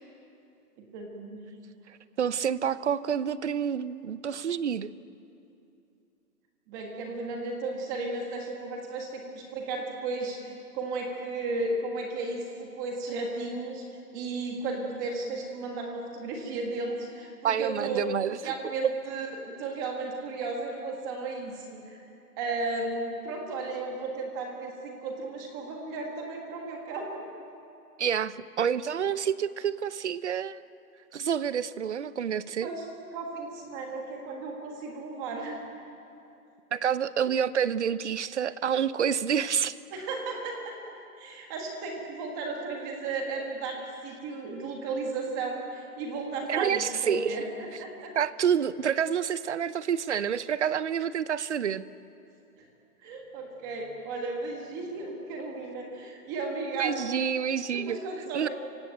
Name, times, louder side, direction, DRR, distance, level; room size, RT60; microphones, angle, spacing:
voice 1, 0.9-1.4 6.7-13.8 14.1-18.1 18.4-22.0 22.4-27.2 32.6-32.8 33.1-35.6 39.9-40.8 41.2-48.1 52.5-52.7 53.0-57.0 57.7-58.5, right 3 dB, 15° right, 1 dB, 1.6 m, -34 dB
voice 2, 2.2-4.9 17.4-18.4 18.8-18.9 28.0-30.6 31.1-32.7 36.7-39.8 46.5-47.4 48.2-51.9 56.8-58.0 58.3-58.5, right 8 dB, 50° right, 16 dB, 0.7 m, -28 dB
28.0 x 16.5 x 9.1 m, 2.6 s
hypercardioid pair, 175°, 47 cm